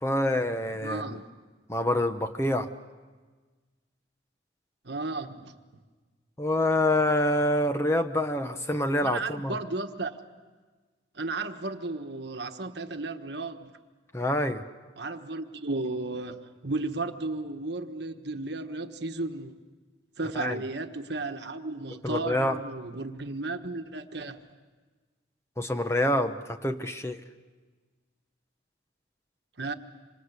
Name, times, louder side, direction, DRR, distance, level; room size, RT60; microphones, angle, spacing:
voice 1, 0.0-1.2 1.7-2.7 6.4-9.6 14.1-14.6 20.3-20.6 22.0-22.6 25.6-27.2, left 1 dB, 15° left, 8 dB, 0.9 m, -26 dB
voice 2, 0.8-1.2 4.8-5.5 9.0-10.1 11.1-13.7 15.0-19.5 20.2-24.4 29.6-29.7, right 3 dB, 65° right, 7 dB, 1.4 m, -34 dB
26.5 x 25.5 x 8.2 m, 1.4 s
head